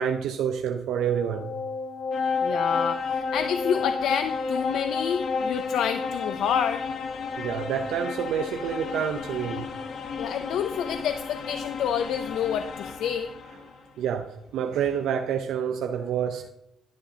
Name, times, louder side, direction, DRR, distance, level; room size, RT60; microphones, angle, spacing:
voice 1, 0.0-1.6 7.3-9.7 14.0-16.5, right 8 dB, 80° right, 0.6 m, -28 dB
sound 1, 1.0-13.8, left 4 dB, 60° left, 1.1 m, -31 dB
voice 2, 2.4-6.8 10.2-13.3, left 8 dB, 80° left, 0.5 m, -28 dB
11.5 x 10.5 x 2.8 m
cardioid pair, 90°, 0 cm